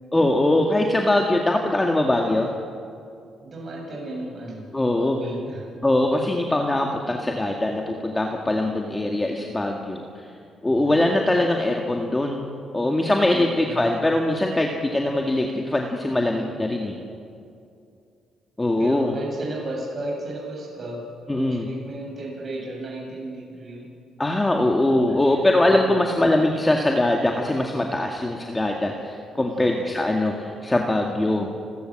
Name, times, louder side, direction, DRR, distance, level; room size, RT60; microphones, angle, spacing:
voice 1, 0.1-2.5 4.7-5.2 5.8-10.2 10.6-12.5 12.7-16.9 18.6-19.2 21.3-21.7 24.2-31.5, left 1 dB, 15° left, 1 dB, 2.0 m, -22 dB
voice 2, 3.4-4.7 4.9-5.6 10.6-11.0 13.3-14.0 16.3-16.7 18.8-21.0 21.3-23.9 24.6-25.8 29.5-29.8, right 2 dB, 40° right, -2 dB, 7.9 m, -35 dB
29.5 x 14.0 x 7.7 m, 2.5 s
cardioid pair, 90°, 0 cm